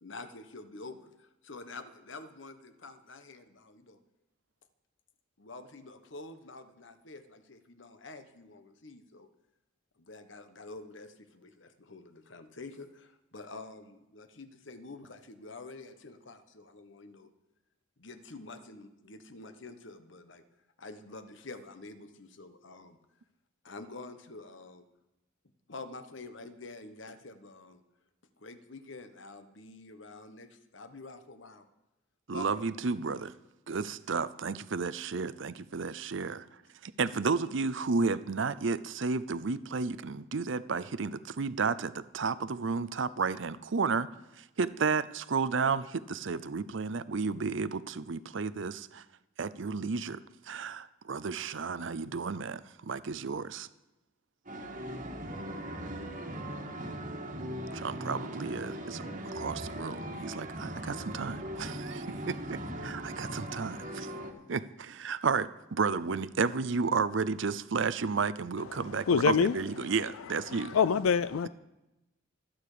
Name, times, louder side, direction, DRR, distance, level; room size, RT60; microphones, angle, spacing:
voice 1, 0.0-4.0 5.4-9.3 10.0-17.3 18.0-20.4 20.8-23.0 23.6-24.9 25.7-27.8 28.4-31.7 32.3-32.6 37.1-37.4, left 3 dB, 60° left, 1.2 m, -47 dB
voice 2, 32.3-33.3 33.7-36.4 36.8-44.1 44.4-49.0 49.4-53.7 57.7-59.1 59.3-64.1 64.5-70.8, right 4 dB, 65° right, 0.6 m, -32 dB
sound 1, 54.5-64.3, right 1 dB, 40° right, 1.6 m, -39 dB
voice 3, 68.7-69.6 70.5-71.5, left 6 dB, 90° left, 0.4 m, -26 dB
24.5 x 8.9 x 5.0 m
head